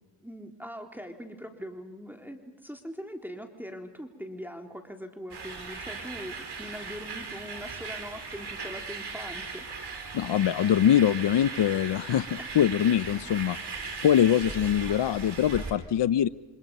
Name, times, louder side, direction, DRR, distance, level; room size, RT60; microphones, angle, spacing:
voice 1, 0.2-9.6 12.4-12.7, equal, 5° right, 2 dB, 3.5 m, -41 dB
sound 1, 5.3-15.7, right 4 dB, 55° right, 5.1 m, -38 dB
voice 2, 10.1-13.6 14.0-16.3, left 10 dB, 60° left, 16 dB, 0.8 m, -23 dB
28.5 x 25.5 x 5.5 m, 1.2 s
supercardioid pair, 50°, 47 cm